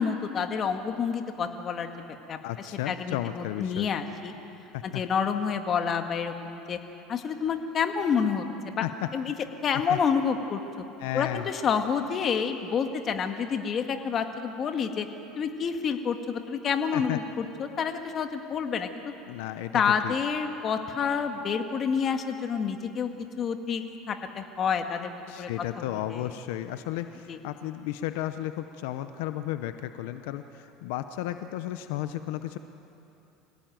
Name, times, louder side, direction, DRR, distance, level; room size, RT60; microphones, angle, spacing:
voice 1, 0.0-1.9 2.3-4.3 4.8-6.8 7.1-8.8 9.1-9.3 9.6-10.6 11.1-15.1 15.4-18.9 19.7-23.1 23.4-25.5 25.8-26.3 27.3-27.4, left 6 dB, 35° left, 6 dB, 1.8 m, -28 dB
voice 2, 2.4-3.9 4.7-5.0 8.8-9.1 9.7-10.0 11.0-11.5 16.9-17.2 19.3-20.1 25.3-32.6, left 13 dB, 80° left, 10 dB, 0.8 m, -33 dB
25.0 x 17.5 x 9.3 m, 2.9 s
supercardioid pair, 130°, 0 cm